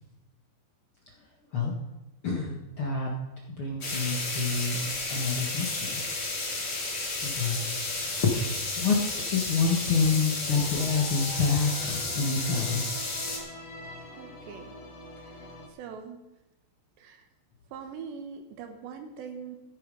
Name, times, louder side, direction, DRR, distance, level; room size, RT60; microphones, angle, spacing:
voice 1, 2.2-3.1 3.6-6.0 7.2-7.6 8.0-9.0 9.3-12.8, left 4 dB, 75° left, -2 dB, 1.2 m, -28 dB
sound 1, 3.8-13.4, left 3 dB, 35° left, 2.8 m, -32 dB
sound 2, 10.5-15.7, left 1 dB, 50° left, 3.0 m, -44 dB
voice 2, 14.1-14.8 15.2-15.5 15.8-16.2 17.0-17.3 17.7-19.6, right 6 dB, 75° right, 6 dB, 3.2 m, -42 dB
15.0 x 10.0 x 5.3 m, 0.99 s
omnidirectional pair, 5.3 m